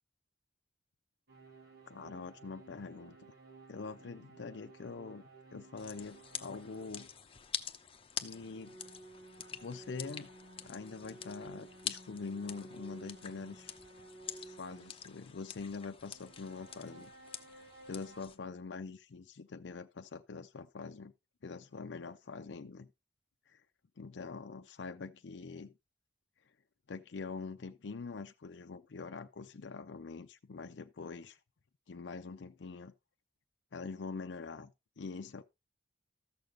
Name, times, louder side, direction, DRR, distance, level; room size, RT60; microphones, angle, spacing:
sound 1, 1.3-7.2 8.2-15.2 16.0-18.2, right 2 dB, 65° right, 2.7 m, -55 dB
voice 1, 1.9-3.3 3.7-5.2 5.5-7.1 8.2-8.8 9.6-10.3 10.6-13.7 14.4-17.1 17.9-21.1 21.4-22.9 23.5-23.6 24.0-25.7 26.9-31.4 31.9-32.9 33.7-35.4, left 4 dB, 80° left, 0.5 m, -44 dB
sound 2, 5.8-18.4, left 8 dB, 30° left, 0.7 m, -46 dB
14.0 x 6.6 x 3.8 m
head